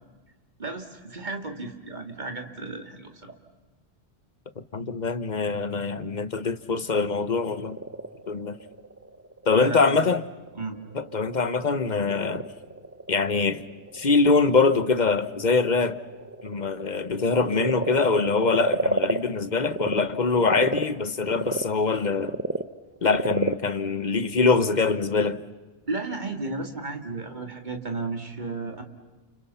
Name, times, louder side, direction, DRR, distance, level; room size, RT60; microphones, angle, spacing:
voice 1, 0.6-3.3 9.5-10.0 10.6-10.8 25.9-28.8, right 3 dB, 40° right, 2.7 m, -33 dB
voice 2, 4.7-7.8 8.3-8.6 9.5-10.2 10.9-12.5 13.1-13.6 13.9-16.0 16.4-22.3 23.0-25.4, left 4 dB, 40° left, 1.1 m, -23 dB
Frog, 7.3-20.0 20.4-25.0, right 2 dB, 15° right, 0.7 m, -32 dB
30.0 x 30.0 x 5.7 m
omnidirectional pair, 1.2 m